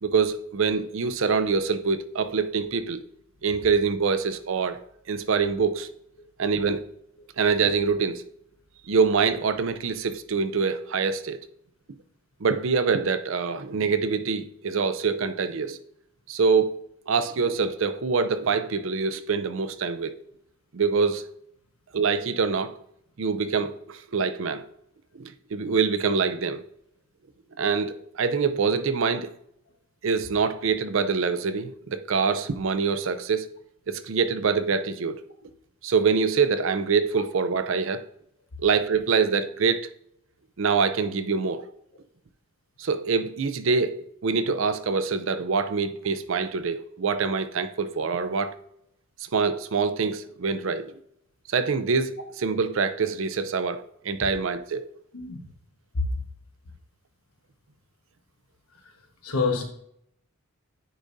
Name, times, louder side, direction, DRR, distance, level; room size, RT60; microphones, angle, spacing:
voice 1, 0.0-3.0 3.4-4.8 5.1-5.9 6.4-6.9 7.4-8.2 8.9-11.4 12.4-15.8 16.3-16.8 17.1-20.2 20.7-21.3 21.9-22.8 23.2-24.6 25.1-26.6 27.6-29.3 30.0-33.5 33.9-35.2 35.8-38.0 38.6-39.9 40.6-41.6 42.8-48.6 49.3-50.9 51.5-54.9, right 5 dB, 60° right, 0.5 m, -25 dB
voice 2, 59.2-59.6, left 4 dB, 90° left, 1.3 m, -26 dB
10.0 x 4.9 x 2.6 m
head